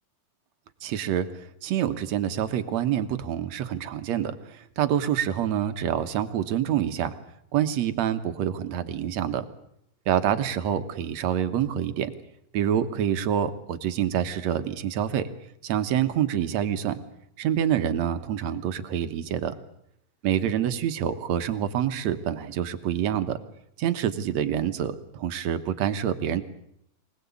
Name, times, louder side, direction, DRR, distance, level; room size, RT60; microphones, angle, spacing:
voice 1, 0.8-1.3 1.6-7.1 7.5-9.5 10.1-12.1 12.5-15.3 15.6-17.0 17.4-19.5 20.2-23.4 23.8-26.4, right 10 dB, 65° right, 9 dB, 2.3 m, -26 dB
24.5 x 19.0 x 8.4 m, 0.75 s
omnidirectional pair, 3.8 m